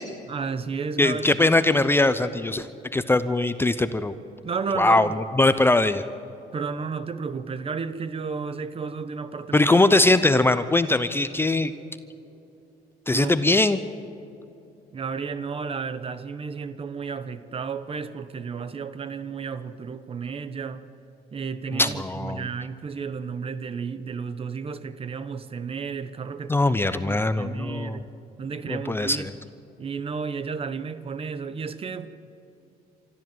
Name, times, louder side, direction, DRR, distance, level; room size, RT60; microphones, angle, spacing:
voice 1, 0.3-1.5 4.4-5.3 6.5-9.8 13.1-13.3 14.9-20.8 21.3-26.6 26.9-28.1 28.4-29.3 29.8-32.1, right 5 dB, 35° right, 1.1 m, -32 dB
voice 2, 1.0-4.1 4.8-6.0 9.5-11.7 13.1-13.8 21.7-22.5 26.5-28.0 28.7-29.3, left 2 dB, 15° left, 0.7 m, -21 dB
24.5 x 13.5 x 7.7 m
cardioid pair, 110°, 17 cm